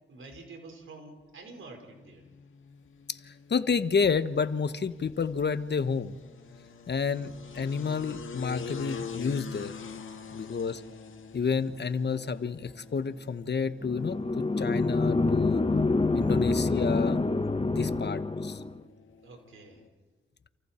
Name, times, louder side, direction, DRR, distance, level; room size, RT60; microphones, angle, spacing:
voice 1, 0.1-2.2 19.2-19.9, right 3 dB, 85° right, 3 dB, 4.7 m, -48 dB
sound 1, 1.8-19.9, left 6 dB, 80° left, 1.7 m, -46 dB
voice 2, 3.1-6.2 6.9-9.8 10.3-10.8 11.3-15.6 16.1-17.2 17.7-18.6, left 5 dB, 55° left, 12 dB, 1.1 m, -30 dB
sound 2, 13.8-18.8, left 3 dB, 25° left, 1.3 m, -27 dB
30.0 x 28.0 x 4.4 m, 1.4 s
cardioid pair, 55°, 20 cm